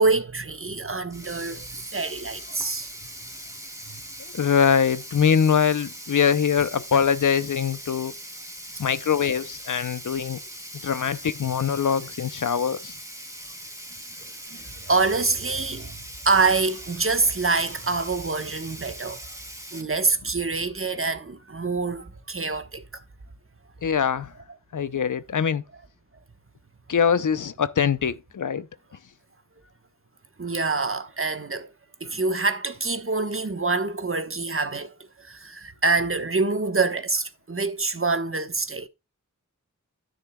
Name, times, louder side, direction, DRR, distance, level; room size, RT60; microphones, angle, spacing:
voice 1, 0.0-2.9 3.9-4.0 14.5-16.0 16.2-19.2 19.7-22.8 30.4-31.7 32.0-34.9 35.2-38.9, right 3 dB, 40° right, 1.1 m, -26 dB
Sink (filling or washing), 1.1-19.8, right 1 dB, 10° right, 1.9 m, -41 dB
voice 2, 4.3-8.1 8.8-10.4 10.8-12.9 23.8-24.3 24.7-25.6 26.9-28.7, left 7 dB, 75° left, 0.6 m, -23 dB
9.9 x 9.9 x 2.2 m
wide cardioid pair, 45°, 32 cm